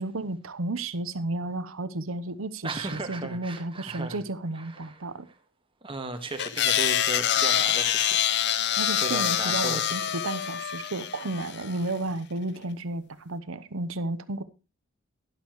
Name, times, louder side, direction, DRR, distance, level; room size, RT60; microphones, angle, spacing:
voice 1, 0.0-5.3 8.8-14.4, right 2 dB, 80° right, 13 dB, 0.9 m, -32 dB
voice 2, 2.6-4.2 4.5-5.0 5.8-8.2 9.0-9.9, right 2 dB, 25° right, 6 dB, 1.6 m, -36 dB
sound 1, 6.4-11.7, left 10 dB, 55° left, 0.6 m, -26 dB
12.5 x 11.0 x 3.1 m, 0.30 s
head